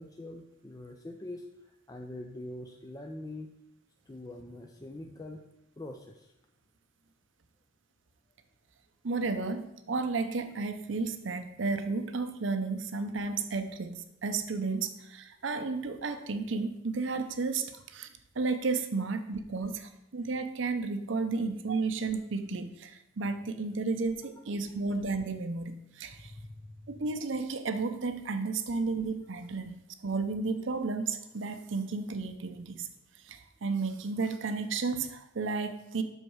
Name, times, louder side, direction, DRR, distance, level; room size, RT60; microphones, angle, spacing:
voice 1, 0.0-3.5 4.1-5.4 5.8-6.3 26.4-26.5, left 1 dB, 20° left, 3 dB, 0.4 m, -43 dB
voice 2, 9.0-18.1 18.4-26.3 26.9-29.8 30.0-32.9 33.2-36.0, right 4 dB, 70° right, 8 dB, 0.6 m, -33 dB
7.7 x 6.4 x 4.6 m, 0.83 s
head